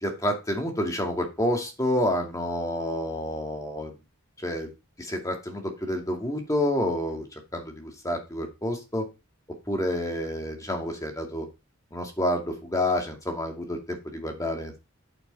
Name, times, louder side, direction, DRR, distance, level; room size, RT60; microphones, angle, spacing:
voice 1, 0.0-3.9 4.4-4.7 5.0-7.3 7.5-9.1 9.7-11.5 11.9-14.8, left 1 dB, 15° left, 3 dB, 2.4 m, -29 dB
9.1 x 8.1 x 4.1 m, 0.27 s
head